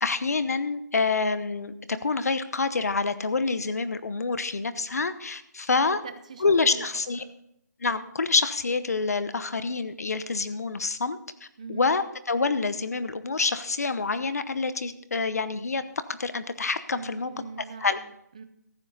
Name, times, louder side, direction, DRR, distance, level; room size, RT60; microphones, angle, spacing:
voice 1, 0.0-6.0 6.4-7.2 7.8-11.2 11.7-15.8 16.1-17.3 17.8-18.0, left 4 dB, 60° left, 13 dB, 1.0 m, -27 dB
voice 2, 5.9-6.9 7.2-7.3 11.6-11.9 17.0-18.4, right 5 dB, 20° right, 11 dB, 0.6 m, -42 dB
14.5 x 9.1 x 4.0 m, 0.77 s
hypercardioid pair, 175°, 10 cm